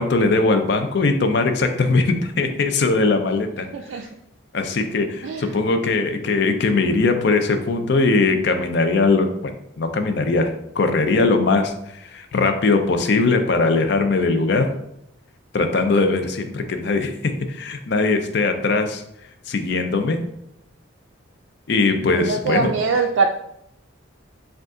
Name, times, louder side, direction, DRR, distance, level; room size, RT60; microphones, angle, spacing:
voice 1, 0.0-3.7 4.5-14.7 15.5-19.0 19.5-20.2 21.7-22.7, left 3 dB, 55° left, 7 dB, 0.4 m, -20 dB
voice 2, 3.7-4.1 5.2-5.5 22.2-23.3, right 4 dB, 70° right, 2 dB, 0.3 m, -22 dB
5.0 x 2.4 x 3.7 m, 0.79 s
head